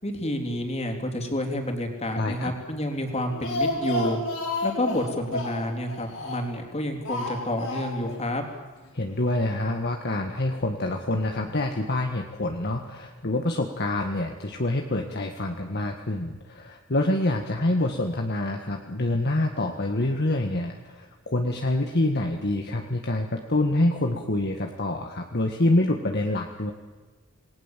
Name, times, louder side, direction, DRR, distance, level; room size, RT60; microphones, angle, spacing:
voice 1, 0.0-4.2 4.6-8.5, left 1 dB, 30° left, 4 dB, 3.8 m, -29 dB
voice 2, 2.1-2.5 8.9-26.7, left 1 dB, 50° left, 3 dB, 1.7 m, -26 dB
Speech, 3.1-6.6 7.1-8.2 8.5-8.6 8.9-9.0, left 2 dB, 85° left, 6.8 m, -31 dB
28.0 x 20.0 x 7.6 m, 1.3 s
head